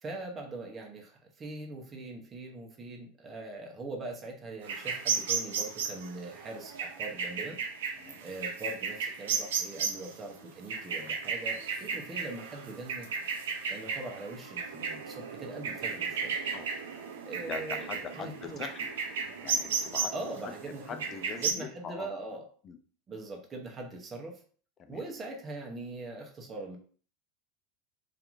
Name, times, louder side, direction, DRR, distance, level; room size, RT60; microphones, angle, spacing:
voice 1, 0.0-7.6 8.2-13.1 13.7-16.4 17.2-18.6 20.1-21.0 21.4-22.4 23.1-24.4 24.9-26.8, right 2 dB, 30° right, 1 dB, 0.7 m, -41 dB
sound 1, 4.6-21.5, right 6 dB, 80° right, 0.4 m, -35 dB
voice 2, 17.5-18.9 19.4-20.1 20.4-20.5 20.9-22.1 22.6-22.8 24.8-25.1, left 6 dB, 35° left, 7 dB, 0.4 m, -42 dB
2.8 x 2.4 x 2.5 m, 0.43 s
hypercardioid pair, 95°, 0 cm